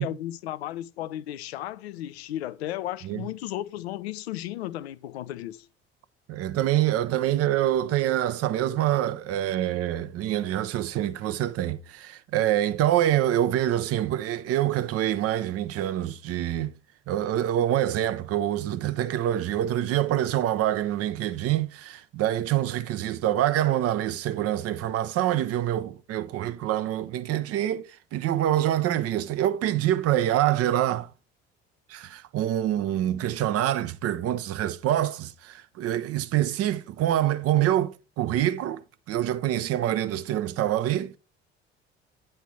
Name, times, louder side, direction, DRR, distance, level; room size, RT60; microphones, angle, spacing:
voice 1, 0.0-5.7, left 13 dB, 75° left, 0.5 m, -34 dB
voice 2, 6.3-16.7 17.1-31.1 31.9-38.8 39.1-41.2, right 12 dB, 50° right, 0.7 m, -26 dB
9.0 x 3.3 x 5.9 m
figure-of-eight pair, 55°, 32 cm